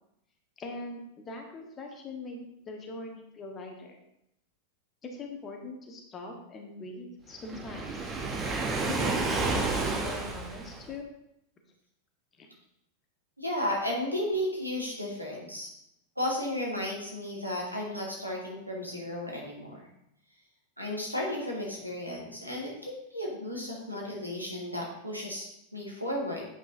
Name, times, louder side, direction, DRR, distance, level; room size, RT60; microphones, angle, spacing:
voice 1, 0.6-4.0 5.0-8.1 8.9-11.1 12.4-12.5, left 3 dB, 25° left, 2 dB, 1.3 m, -42 dB
Waves surf, 7.4-10.9, right 3 dB, 25° right, 0.9 m, -30 dB
voice 2, 13.4-15.7 16.2-19.8 20.8-26.4, left 1 dB, 90° right, -3 dB, 1.7 m, -34 dB
8.4 x 5.2 x 2.7 m, 0.80 s
figure-of-eight pair, 90°, 0 cm